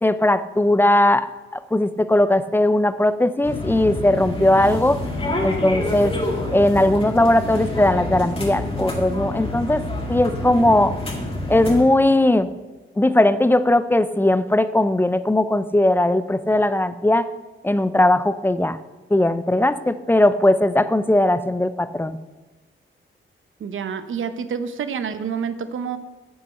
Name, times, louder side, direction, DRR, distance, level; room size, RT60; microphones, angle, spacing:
voice 1, 0.0-1.3 1.5-5.0 5.4-6.1 6.5-9.8 10.1-10.9 11.5-12.5 13.0-17.2 17.6-18.8 19.1-22.2, left 1 dB, 10° left, 13 dB, 0.4 m, -18 dB
sound 1, 3.4-11.8, left 1 dB, 25° left, 2.2 m, -27 dB
voice 2, 23.6-26.0, right 6 dB, 70° right, 11 dB, 0.9 m, -28 dB
9.5 x 8.6 x 6.4 m, 1.2 s
wide cardioid pair, 135°, 21 cm